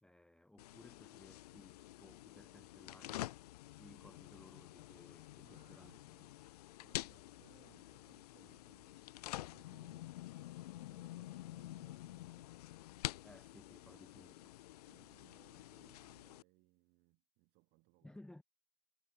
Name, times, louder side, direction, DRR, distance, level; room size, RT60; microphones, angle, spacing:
voice 1, 0.0-3.3 3.8-6.4 13.2-14.5 18.0-18.4, left 1 dB, 5° left, 0.9 m, -60 dB
sound 1, 0.6-16.4, left 15 dB, 75° left, 0.6 m, -49 dB
voice 2, 5.4-6.1 6.8-9.0 9.3-10.2 10.7-12.6 13.9-14.4 14.8-18.2, right 27 dB, 55° right, 7.0 m, -70 dB
hypercardioid pair, 105°, 20 cm